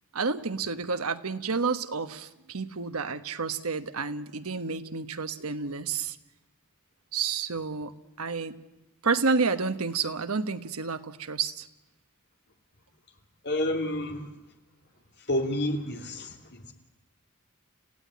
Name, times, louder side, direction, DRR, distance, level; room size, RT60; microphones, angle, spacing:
voice 1, 0.1-6.2 7.1-8.6 9.0-11.7, right 4 dB, 70° right, 10 dB, 1.2 m, -30 dB
voice 2, 13.4-14.3 15.3-16.7, left 1 dB, 50° left, 4 dB, 2.9 m, -29 dB
30.0 x 16.0 x 9.6 m, 0.97 s
head